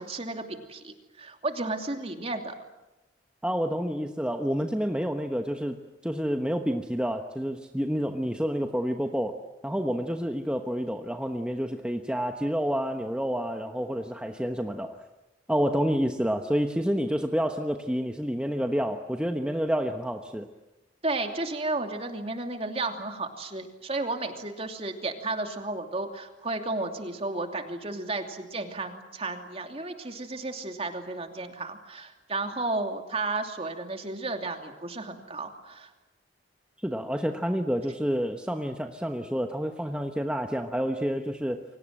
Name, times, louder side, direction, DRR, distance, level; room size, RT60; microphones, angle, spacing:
voice 1, 0.0-2.5 21.0-35.9, right 2 dB, 35° right, 5 dB, 2.8 m, -33 dB
voice 2, 3.4-5.8 6.0-9.4 9.6-15.0 15.5-20.5 36.8-41.6, equal, 5° right, 4 dB, 1.1 m, -29 dB
29.5 x 24.5 x 7.7 m, 1.0 s
head